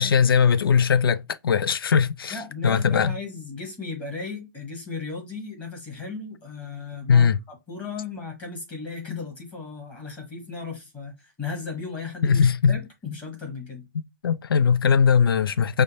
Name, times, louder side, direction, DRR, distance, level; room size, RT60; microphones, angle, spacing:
voice 1, 0.0-3.2 7.1-7.4 12.2-12.8 13.9-15.8, left 6 dB, 85° left, 0.5 m, -20 dB
voice 2, 2.3-13.9, left 4 dB, 10° left, 1.2 m, -36 dB
5.0 x 2.1 x 4.1 m
hypercardioid pair, 165°, 12 cm